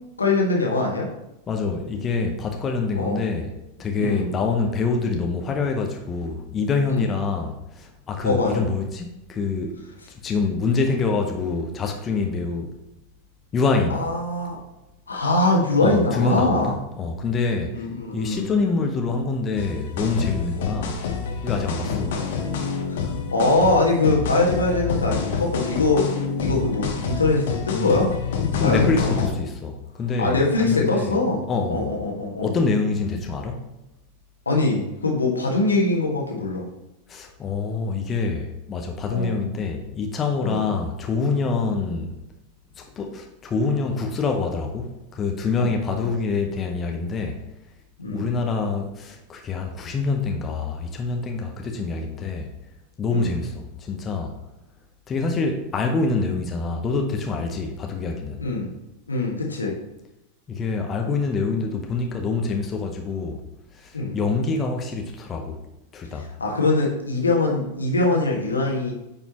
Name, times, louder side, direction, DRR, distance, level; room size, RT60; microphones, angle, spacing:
voice 1, 0.2-1.1 2.9-3.2 4.0-4.4 6.9-7.1 8.2-8.6 13.9-14.6 15.1-16.8 17.7-18.5 21.8-22.1 22.9-26.1 26.4-29.3 30.2-31.4 31.7-32.5 34.4-36.7 39.1-39.4 40.4-40.7 45.6-45.7 46.0-46.1 48.0-48.4 53.1-53.4 58.4-58.7 59.1-59.7 63.9-64.2 66.4-68.9, left 2 dB, 75° left, -1 dB, 1.7 m, -23 dB
voice 2, 1.5-3.5 3.8-9.8 10.2-12.7 13.5-14.0 15.8-17.9 18.1-21.0 21.4-22.2 28.6-31.2 31.5-31.9 32.4-33.6 37.1-42.1 42.8-47.4 48.1-52.5 53.0-54.3 55.1-58.4 60.5-63.4 63.7-65.6 65.9-66.3, left 4 dB, 25° left, 3 dB, 0.9 m, -26 dB
sound 1, 19.6-29.3, left 5 dB, 55° left, 1.2 m, -27 dB
9.3 x 5.4 x 3.0 m, 0.91 s
figure-of-eight pair, 90°, 0 cm